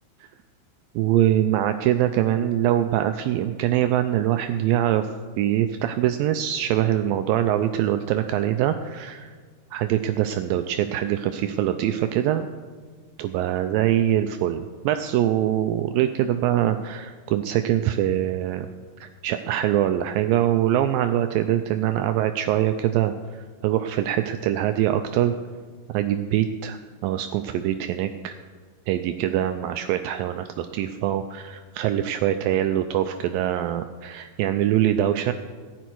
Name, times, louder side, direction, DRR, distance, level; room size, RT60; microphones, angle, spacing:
voice 1, 1.0-5.1 5.4-9.4 9.7-12.5 13.2-18.7 19.0-25.3 25.9-28.4 28.9-35.3, right 12 dB, 85° right, 8 dB, 2.0 m, -23 dB
15.5 x 10.5 x 4.6 m, 1.5 s
omnidirectional pair, 4.5 m